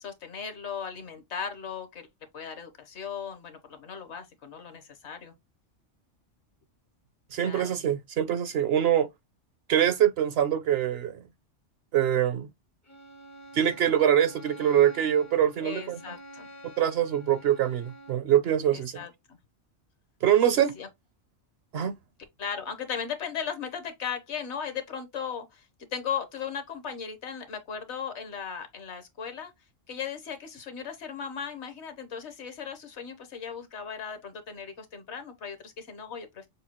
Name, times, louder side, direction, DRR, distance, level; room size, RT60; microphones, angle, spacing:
voice 1, 0.0-2.1 2.3-5.3 7.4-7.7 15.6-16.5 18.7-19.4 20.5-20.9 22.4-25.6 25.9-29.5 29.9-36.5, left 7 dB, 65° left, 1.2 m, -37 dB
voice 2, 7.3-9.1 9.7-11.2 11.9-12.5 13.5-16.2 16.8-19.0 20.2-20.7 21.7-22.0, right 10 dB, 65° right, 0.7 m, -24 dB
Bowed string instrument, 12.9-18.3, right 1 dB, 25° left, 0.3 m, -48 dB
6.5 x 2.3 x 2.9 m
omnidirectional pair, 1.3 m